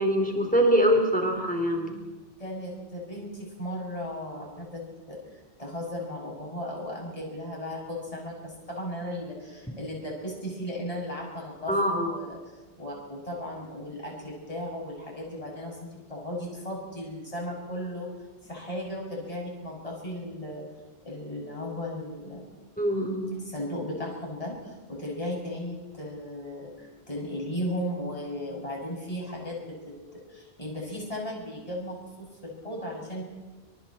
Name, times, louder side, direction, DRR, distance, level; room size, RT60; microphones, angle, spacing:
voice 1, 0.0-2.0 11.7-12.1 22.8-23.5, equal, 5° left, 2 dB, 3.6 m, -24 dB
voice 2, 2.4-4.8 5.1-12.4 12.8-18.1 18.4-20.6 21.0-22.5 23.4-33.2, left 1 dB, 30° left, -3 dB, 6.9 m, -36 dB
29.5 x 26.5 x 4.4 m, 1.3 s
omnidirectional pair, 1.2 m